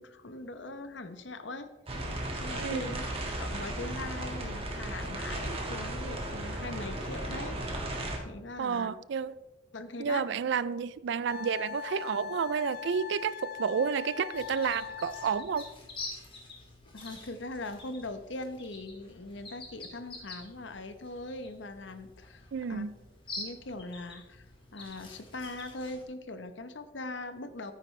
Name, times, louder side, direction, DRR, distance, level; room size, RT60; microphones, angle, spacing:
voice 1, 0.0-1.7 2.4-3.0 3.4-8.0 8.2-8.9 9.7-10.3 16.9-22.8 23.4-24.4 24.7-27.7, left 2 dB, 65° left, 0.9 m, -41 dB
sound 1, 1.9-8.2, right 1 dB, 30° right, 1.9 m, -35 dB
voice 2, 2.6-2.9 8.6-9.3 10.0-15.7 22.5-23.0, right 6 dB, 65° right, 0.4 m, -31 dB
Wind instrument woodwind instrument, 11.3-15.7, left 8 dB, 50° left, 0.4 m, -41 dB
sound 2, 14.3-26.0, left 2 dB, 25° left, 2.3 m, -47 dB
13.5 x 9.4 x 3.2 m
head